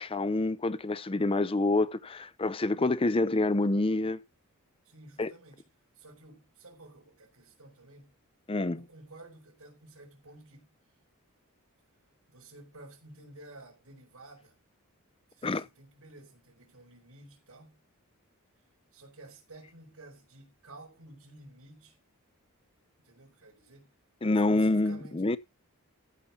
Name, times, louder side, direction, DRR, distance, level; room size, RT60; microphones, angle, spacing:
voice 1, 0.0-4.2 5.2-5.3 8.5-8.8 15.4-15.7 24.2-25.4, left 2 dB, 25° left, 0.6 m, -27 dB
voice 2, 4.8-5.7 5.9-8.1 8.7-10.7 12.3-14.6 15.3-17.8 18.9-22.0 23.0-23.9 24.5-25.4, right 2 dB, 90° right, 4.7 m, -52 dB
14.5 x 5.3 x 5.8 m
head